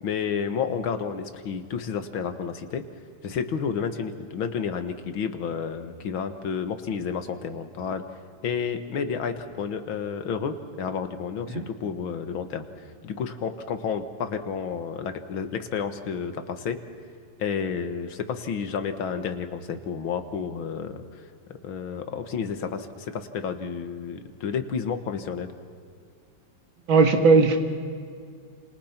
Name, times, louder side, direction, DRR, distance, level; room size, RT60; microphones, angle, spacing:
voice 1, 0.0-2.8 3.2-8.0 8.4-12.7 13.0-16.8 17.4-21.2 21.6-25.5, left 6 dB, 85° left, 8 dB, 2.3 m, -31 dB
voice 2, 26.9-27.6, right 4 dB, 80° right, 5 dB, 2.6 m, -17 dB
29.5 x 27.5 x 5.9 m, 2.3 s
omnidirectional pair, 2.1 m